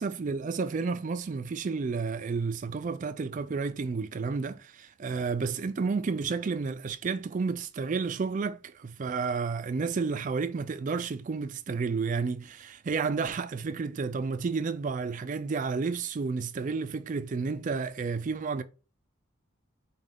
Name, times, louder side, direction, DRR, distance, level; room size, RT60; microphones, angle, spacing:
voice 1, 0.0-18.6, right 4 dB, 35° right, 0.3 m, -31 dB
5.4 x 2.2 x 3.5 m
head